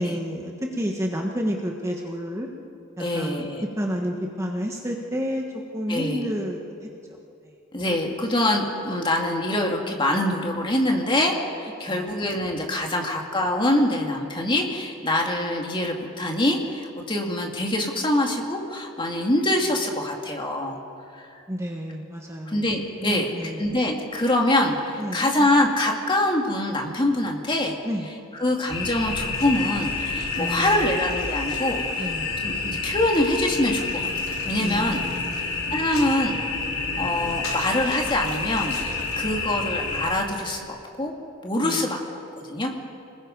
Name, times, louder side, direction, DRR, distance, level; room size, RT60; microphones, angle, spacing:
voice 1, 0.0-2.5 3.0-3.5 3.8-5.5 5.7-6.9 11.9-12.1 12.8-12.9 21.5-22.7 23.0-23.8 25.0-25.3 27.8-28.1 30.4-31.0 32.0-32.3 34.6-36.1 41.6-41.9, equal, 15° right, 0 dB, 1.4 m, -30 dB
voice 2, 3.0-3.6 5.9-6.2 7.7-20.8 21.1-21.2 22.5-27.7 28.4-32.1 32.4-34.0 34.5-35.0 35.7-36.4 37.0-38.8 39.2-41.1 41.4-42.0 42.5-42.7, left 1 dB, 25° left, 1 dB, 2.3 m, -24 dB
sound 1, 28.7-40.1, left 4 dB, 85° left, 5.4 m, -29 dB
28.5 x 20.0 x 5.4 m, 2.7 s
head